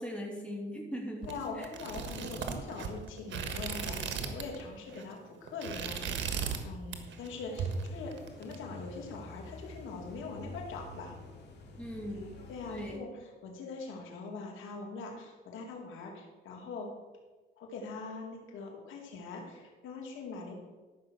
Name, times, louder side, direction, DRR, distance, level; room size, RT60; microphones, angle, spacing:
voice 1, 0.0-1.7 11.8-12.4 12.7-13.1, equal, 5° left, -1 dB, 2.8 m, -40 dB
sound 1, 1.2-4.6 4.9-5.1 5.5-6.6 6.9-7.3 7.6-8.5, right 6 dB, 70° right, 1.6 m, -36 dB
voice 2, 1.3-11.1 12.5-16.9 17.6-20.5, left 4 dB, 85° left, 1 dB, 2.5 m, -42 dB
sound 2, 7.3-13.0, left 2 dB, 60° left, 2.5 m, -49 dB
13.5 x 6.0 x 6.4 m, 1.3 s
cardioid pair, 90°, 20 cm